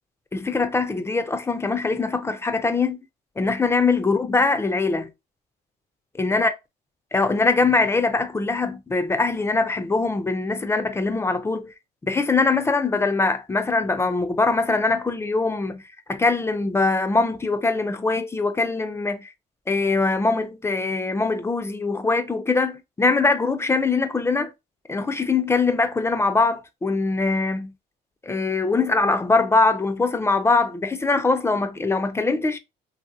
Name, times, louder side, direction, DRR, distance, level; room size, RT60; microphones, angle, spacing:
voice 1, 0.3-3.0 3.4-5.1 6.2-6.5 7.1-11.7 12.0-15.8 16.1-19.3 19.7-24.5 24.9-27.7 28.2-32.6, left 3 dB, 15° left, 0.3 m, -22 dB
2.8 x 2.7 x 2.3 m
cardioid pair, 110°, 17 cm